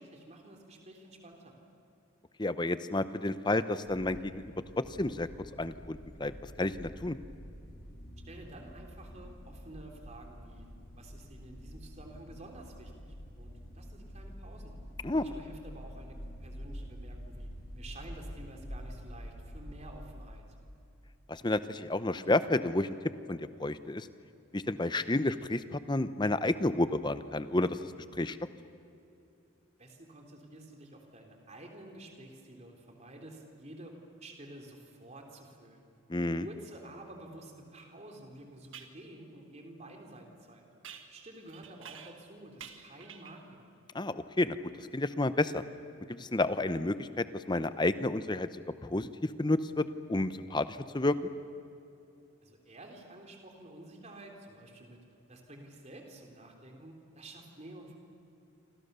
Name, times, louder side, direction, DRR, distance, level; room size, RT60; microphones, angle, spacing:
voice 1, 0.0-1.6 8.2-10.7 11.0-14.7 15.1-20.4 29.8-33.9 34.2-35.8 36.4-40.6 41.1-43.7 52.4-55.0 55.3-57.9, right 1 dB, 30° right, 2 dB, 3.3 m, -50 dB
voice 2, 2.4-4.4 4.8-5.3 5.6-7.2 15.0-15.2 21.3-22.9 23.3-24.1 24.5-28.4 36.1-36.5 43.9-45.6 46.1-48.5 48.8-51.2, left 2 dB, 20° left, 12 dB, 0.7 m, -31 dB
sound 1, 3.8-20.1, equal, 45° left, 4.7 m, -47 dB
sound 2, 37.8-37.9 38.7-39.0 40.8-42.3 42.6-43.5, right 7 dB, 60° right, 1.8 m, -50 dB
28.5 x 25.5 x 6.8 m, 2.8 s
head